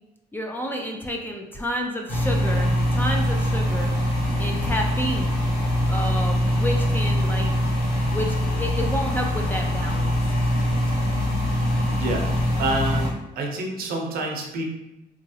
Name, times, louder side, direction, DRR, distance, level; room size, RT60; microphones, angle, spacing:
voice 1, 0.3-3.9 4.4-5.4 5.9-7.5 8.1-10.1, equal, 10° left, 1 dB, 0.4 m, -30 dB
sound 1, 2.1-13.1, left 1 dB, 70° left, 1.1 m, -23 dB
voice 2, 11.9-14.6, right 2 dB, 65° right, 1 dB, 0.7 m, -28 dB
3.0 x 2.5 x 2.7 m, 0.95 s
cardioid pair, 110°, 17 cm